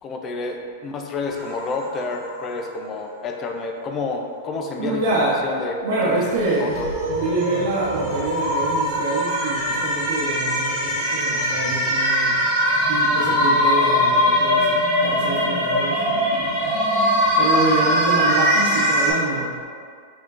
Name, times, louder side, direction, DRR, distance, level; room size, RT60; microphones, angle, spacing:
voice 1, 0.0-6.2 6.6-6.9, left 3 dB, 25° left, 3 dB, 0.4 m, -29 dB
sound 1, 1.3-2.3 6.3-19.1, equal, 30° right, 1.5 m, -21 dB
voice 2, 4.8-5.4 5.8-12.5 12.8-16.0 17.4-19.5, right 3 dB, 60° right, -8 dB, 0.8 m, -26 dB
4.6 x 3.7 x 2.5 m, 2.1 s
supercardioid pair, 160°, 0 cm